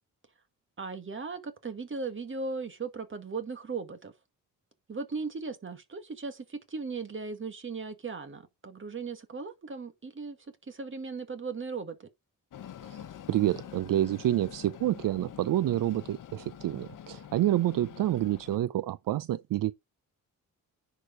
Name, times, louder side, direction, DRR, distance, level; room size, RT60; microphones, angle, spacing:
voice 1, 0.8-4.1 4.9-10.4 10.7-12.1, right 4 dB, 35° right, 2.0 m, -37 dB
Train, 12.5-18.6, left 10 dB, 65° left, 1.1 m, -46 dB
voice 2, 12.8-19.7, right 13 dB, 70° right, 0.5 m, -28 dB
10.0 x 4.9 x 5.2 m
cardioid pair, 105°, 35 cm